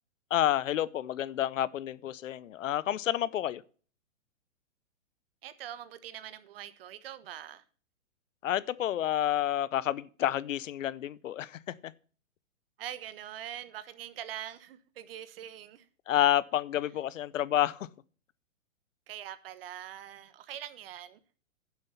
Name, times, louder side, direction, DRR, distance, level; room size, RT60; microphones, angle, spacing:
voice 1, 0.3-3.6 8.4-11.6 16.1-17.9, left 12 dB, 70° left, 0.7 m, -29 dB
voice 2, 5.4-7.6 12.8-15.9 19.1-21.2, right 11 dB, 45° right, 1.2 m, -43 dB
10.5 x 7.5 x 5.6 m
hypercardioid pair, 150°, 39 cm